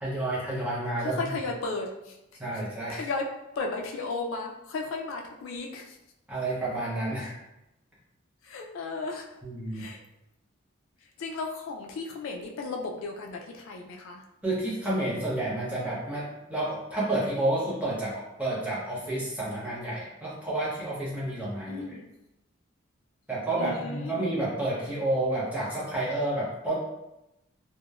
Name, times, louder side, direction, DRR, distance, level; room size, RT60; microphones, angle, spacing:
voice 1, 0.0-1.2 2.4-3.0 6.3-7.3 9.4-9.9 14.4-21.9 23.3-26.8, right 1 dB, 5° right, -8 dB, 0.7 m, -30 dB
voice 2, 1.0-2.2 2.5-2.6 2.9-6.0 7.2-7.3 8.4-9.3 9.7-10.0 11.2-14.2 21.7-22.1 23.6-24.3, left 3 dB, 75° left, 1 dB, 0.3 m, -35 dB
2.9 x 2.0 x 2.3 m, 0.91 s
head